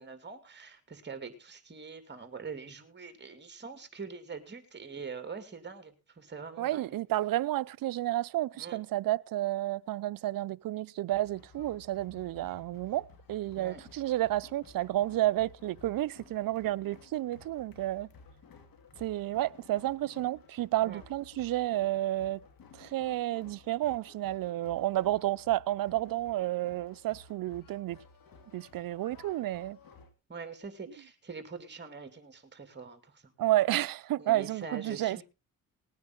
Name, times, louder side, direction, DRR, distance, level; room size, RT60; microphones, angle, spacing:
voice 1, 0.0-7.0 8.6-8.8 13.6-13.8 20.8-21.0 30.3-33.3 34.2-35.2, right 5 dB, 30° right, 2.7 m, -44 dB
voice 2, 6.6-18.1 19.0-22.4 22.8-28.0 28.5-29.8 33.4-35.2, right 15 dB, 70° right, 0.6 m, -31 dB
sound 1, 11.1-30.1, left 5 dB, 70° left, 2.4 m, -56 dB
19.0 x 9.4 x 3.9 m
cardioid pair, 85°, 36 cm